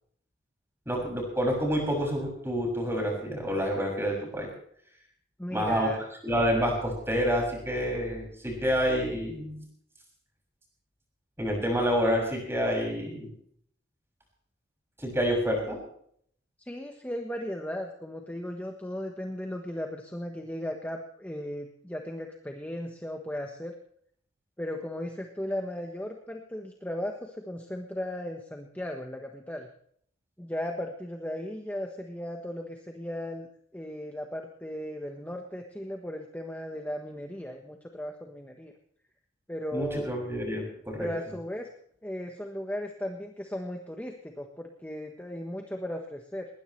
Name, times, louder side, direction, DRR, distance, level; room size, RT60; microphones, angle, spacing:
voice 1, 0.9-4.5 5.5-5.9 6.2-9.6 11.4-13.3 15.0-15.8 39.7-41.1, equal, 15° right, 0 dB, 6.6 m, -28 dB
voice 2, 5.4-6.0 16.7-23.7 24.6-29.7 30.4-33.5 33.7-38.7 39.5-40.1 41.0-41.7 42.0-46.5, left 1 dB, 10° left, 3 dB, 1.3 m, -36 dB
20.0 x 20.0 x 3.3 m, 0.65 s
head